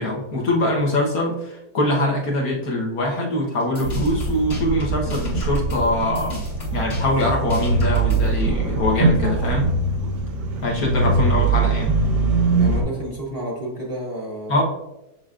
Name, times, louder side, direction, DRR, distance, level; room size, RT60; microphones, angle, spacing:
voice 1, 0.0-6.4 6.7-9.7 10.6-12.0 14.5-14.6, left 1 dB, 65° left, -1 dB, 1.6 m, -23 dB
sound 1, 3.6-8.4, right 1 dB, 45° left, 1.9 m, -32 dB
sound 2, 3.8-12.8, right 3 dB, 90° right, 1.6 m, -22 dB
voice 2, 12.6-14.6, equal, 45° right, -1 dB, 0.9 m, -30 dB
6.4 x 6.1 x 2.5 m, 0.93 s
omnidirectional pair, 1.7 m